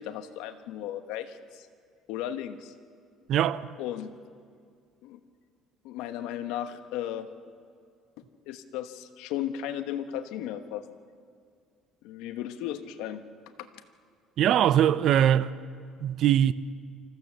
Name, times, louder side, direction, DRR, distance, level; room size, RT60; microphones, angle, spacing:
voice 1, 0.0-1.7 2.1-2.7 3.8-4.1 5.0-5.2 5.8-7.3 8.5-10.8 12.0-13.2 13.6-13.7, left 11 dB, 85° left, 1.1 m, -35 dB
voice 2, 3.3-3.7 14.4-15.5 16.0-16.5, right 10 dB, 60° right, 0.6 m, -22 dB
25.0 x 14.5 x 7.2 m
cardioid pair, 120°, 0 cm